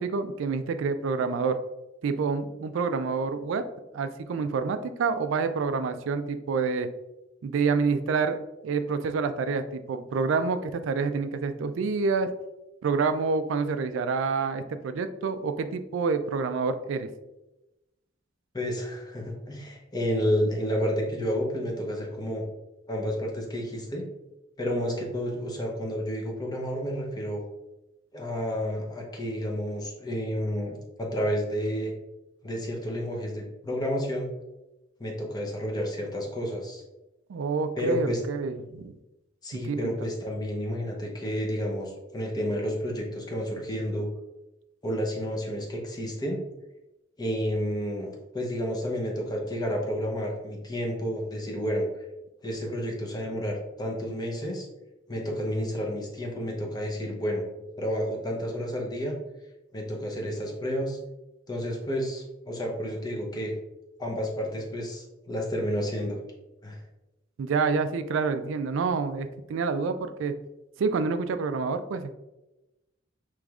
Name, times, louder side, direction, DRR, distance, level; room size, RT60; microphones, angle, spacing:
voice 1, 0.0-1.6 2.0-3.6 3.9-6.9 7.4-12.3 12.8-17.1 37.3-39.0 39.7-39.9 67.4-70.4 70.8-72.1, right 4 dB, 75° right, 10 dB, 0.3 m, -28 dB
voice 2, 18.5-22.4 22.9-24.0 24.6-27.4 28.1-31.9 32.4-34.3 35.0-36.8 37.8-38.2 39.4-44.1 44.8-46.4 47.2-52.1 52.4-54.7 55.1-57.4 57.8-59.2 59.7-61.0 61.5-63.6 64.0-66.2 66.6-66.8, equal, 20° left, 0 dB, 0.7 m, -30 dB
4.9 x 3.0 x 2.3 m, 0.98 s
head